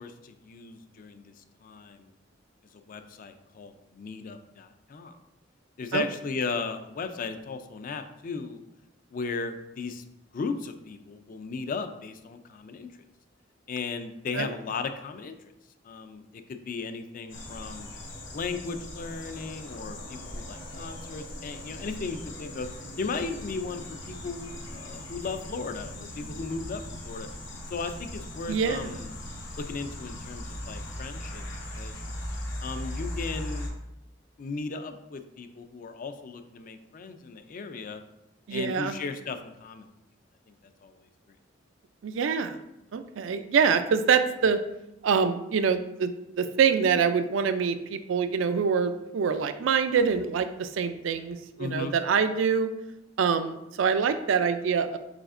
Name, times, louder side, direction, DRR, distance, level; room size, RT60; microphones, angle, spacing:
voice 1, 0.0-2.1 2.7-5.1 5.8-8.6 9.1-10.0 10.3-12.9 13.7-15.3 15.8-17.9 18.3-22.7 23.0-27.3 27.7-29.1 29.6-31.5 31.8-32.0 32.6-33.7 34.4-38.0 38.5-39.9 40.5-40.6 40.8-41.0 51.6-51.9, left 4 dB, 45° left, 9 dB, 0.4 m, -36 dB
sound 1, 17.3-33.7, left 1 dB, 75° left, 1.0 m, -39 dB
voice 2, 28.5-29.0 38.5-39.0 42.0-42.6 42.9-44.6 45.0-46.1 46.4-52.7 53.2-55.0, right 6 dB, 80° right, 10 dB, 0.4 m, -25 dB
4.9 x 4.1 x 2.5 m, 0.88 s
head